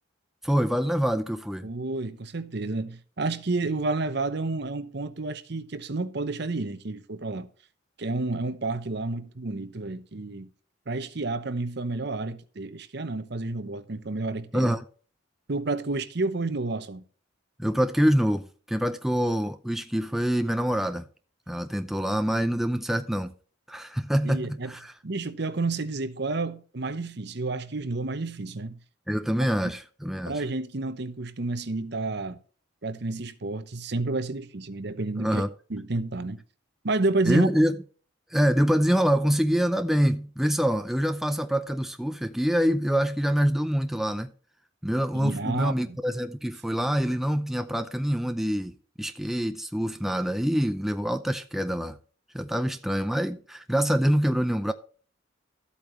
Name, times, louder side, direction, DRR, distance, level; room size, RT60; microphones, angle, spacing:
voice 1, 0.4-1.7 14.5-14.8 17.6-21.0 21.5-23.3 23.7-24.9 29.1-30.4 35.2-35.5 37.3-37.8 38.3-44.3 44.8-48.7 49.0-52.0 52.3-54.7, equal, ahead, 0.5 m, -25 dB
voice 2, 1.6-7.5 8.0-10.5 10.9-14.7 15.5-17.0 24.2-24.7 25.0-28.8 30.3-32.4 32.8-35.4 35.7-36.4 36.8-37.5 45.1-46.0, right 3 dB, 55° right, 0.9 m, -30 dB
13.5 x 8.5 x 3.1 m
head